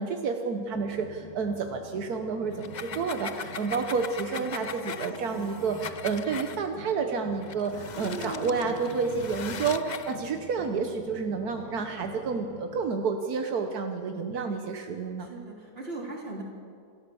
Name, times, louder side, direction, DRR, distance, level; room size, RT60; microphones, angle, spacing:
voice 1, 0.0-15.3, right 5 dB, 80° right, 4 dB, 1.6 m, -30 dB
sound 1, 0.7-12.9, left 1 dB, 20° left, 2.7 m, -45 dB
sound 2, 2.5-6.6 7.4-10.2, left 7 dB, 55° left, 0.5 m, -40 dB
sound 3, 3.8-6.1 7.9-9.7 11.3-11.9, right 1 dB, 10° right, 6.9 m, -43 dB
voice 2, 15.2-16.4, right 2 dB, 40° right, -1 dB, 3.7 m, -39 dB
27.5 x 13.5 x 7.0 m, 2.3 s
omnidirectional pair, 1.6 m